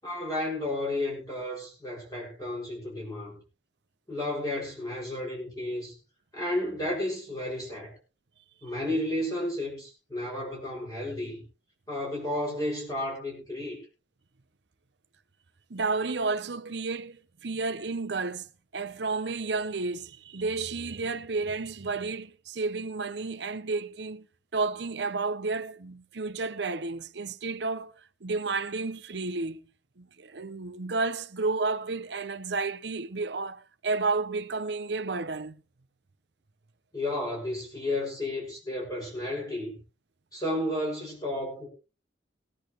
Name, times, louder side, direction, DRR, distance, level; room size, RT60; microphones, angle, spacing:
voice 1, 0.0-3.4 4.1-5.9 6.3-7.9 8.6-11.4 11.9-13.8 36.9-39.8 40.3-41.7, left 1 dB, 20° left, 6.1 m, -32 dB
voice 2, 15.7-18.5 18.7-24.3 24.5-27.9 28.2-29.6 30.0-35.6, right 3 dB, 70° right, 0.8 m, -31 dB
20.0 x 10.5 x 3.1 m
head